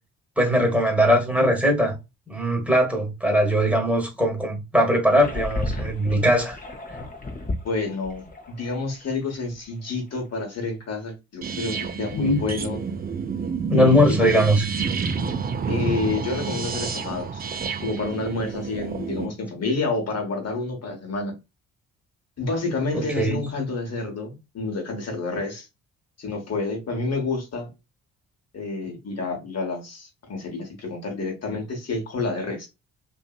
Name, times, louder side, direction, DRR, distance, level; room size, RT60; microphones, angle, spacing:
voice 1, 0.4-2.0 2.3-6.6 12.1-12.4 13.7-14.6 22.9-23.4, equal, 5° right, 1.2 m, -20 dB
sound 1, 5.2-9.2 9.5-9.7 10.1-10.2, left 2 dB, 20° left, 0.8 m, -33 dB
voice 2, 7.4-12.8 13.7-14.3 15.7-17.4 17.8-21.3 22.4-25.7 26.2-27.7 28.5-32.7, left 3 dB, 40° left, 1.2 m, -29 dB
sound 2, 11.4-19.3, right 5 dB, 25° right, 0.5 m, -29 dB
2.7 x 2.6 x 2.4 m
hypercardioid pair, 45°, 39 cm